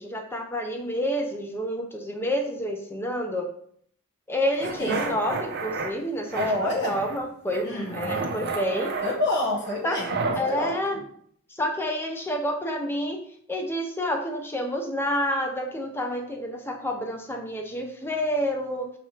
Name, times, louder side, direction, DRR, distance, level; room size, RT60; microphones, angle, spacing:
voice 1, 0.0-3.5 4.3-8.9 9.8-10.0 10.4-11.0 11.5-13.2 13.5-18.9, equal, 10° left, 3 dB, 0.5 m, -29 dB
sound 1, 4.6-5.9 6.3-7.2 7.5-10.4, right 3 dB, 50° right, 0.5 m, -32 dB
voice 2, 6.3-7.0 7.6-8.3 9.0-10.8, left 1 dB, 55° left, -2 dB, 1.0 m, -28 dB
5.7 x 3.2 x 2.8 m, 0.64 s
head